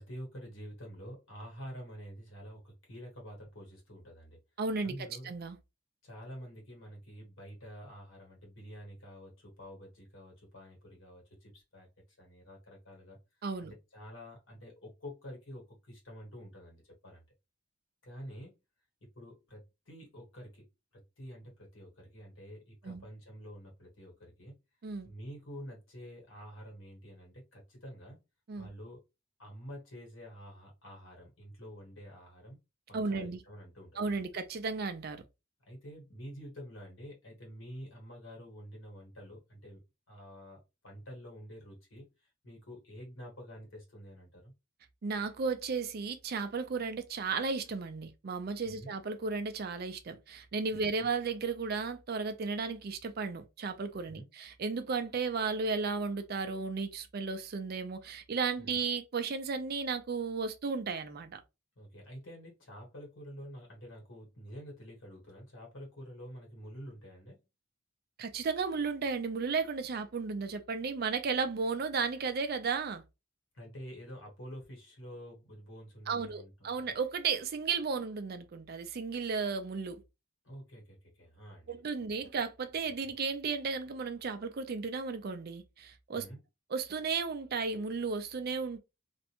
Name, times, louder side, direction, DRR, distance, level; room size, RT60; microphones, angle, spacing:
voice 1, 0.0-4.4 4.8-5.3 6.0-11.9 12.2-13.2 13.6-17.2 18.0-18.5 19.0-20.7 21.2-24.5 25.0-28.2 28.6-29.0 29.4-32.6 32.9-34.2 35.7-39.8 40.1-44.5 48.6-48.9 50.7-50.8 54.1-54.3 58.6-58.8 61.8-67.4 73.5-76.7 80.4-81.8 82.1-82.3 86.1-86.4, equal, 75° left, 1.3 m, -48 dB
voice 2, 4.6-4.9 5.2-5.6 13.4-13.7 22.8-23.0 24.8-25.1 28.5-28.7 32.9-33.4 34.0-35.2 45.0-61.4 68.2-73.0 76.1-80.0 81.7-86.3 86.7-88.8, right 4 dB, 50° right, 0.4 m, -34 dB
2.5 x 2.1 x 2.8 m
head